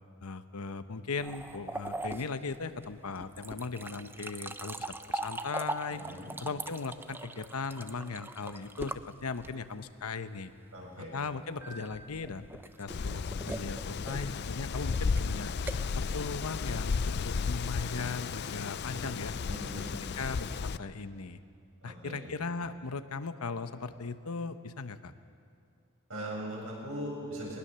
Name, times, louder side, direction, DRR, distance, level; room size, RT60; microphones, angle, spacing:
voice 1, 0.2-6.0 6.4-8.9 9.2-10.5 11.0-12.5 12.8-15.5 15.9-19.4 19.7-21.4 21.8-25.1, left 4 dB, 85° left, 10 dB, 0.9 m, -38 dB
sound 1, 1.2-9.8 11.6-17.3, right 2 dB, 10° right, 0.5 m, -41 dB
voice 2, 5.9-6.3 10.7-11.2 18.9-19.1 19.5-19.9 21.8-22.2 26.1-27.6, equal, 70° right, -3 dB, 7.5 m, -40 dB
Wind, 12.9-20.8, left 5 dB, 50° left, 0.4 m, -34 dB
21.0 x 20.0 x 6.8 m, 2.3 s
head